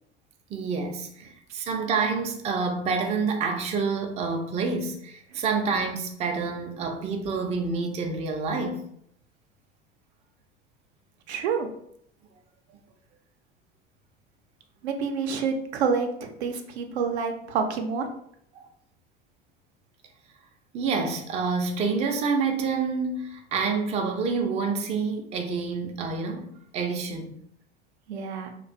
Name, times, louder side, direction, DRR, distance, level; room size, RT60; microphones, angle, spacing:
voice 1, 0.5-8.8 20.7-27.3, right 4 dB, 20° right, 0.3 m, -28 dB
voice 2, 11.3-11.7 14.8-18.1 28.1-28.5, right 5 dB, 80° right, 0.5 m, -28 dB
2.3 x 2.2 x 2.4 m
hypercardioid pair, 80°, 33 cm